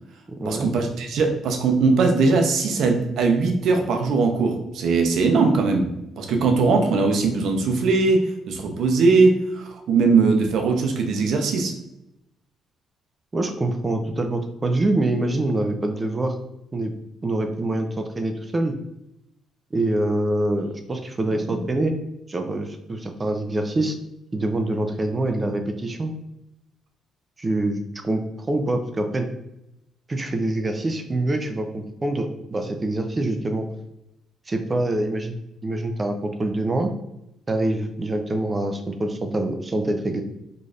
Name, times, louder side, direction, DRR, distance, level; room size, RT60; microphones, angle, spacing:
voice 1, 0.4-5.9 6.2-11.7, right 4 dB, 75° right, 4 dB, 0.7 m, -20 dB
voice 2, 13.3-16.4 16.7-16.9 17.2-18.8 19.7-21.9 22.3-24.0 24.3-26.1 27.4-29.3 30.1-33.7 34.5-36.9 37.5-40.2, right 2 dB, 25° right, 5 dB, 0.5 m, -25 dB
3.9 x 3.2 x 2.4 m, 0.86 s
cardioid pair, 90°, 0 cm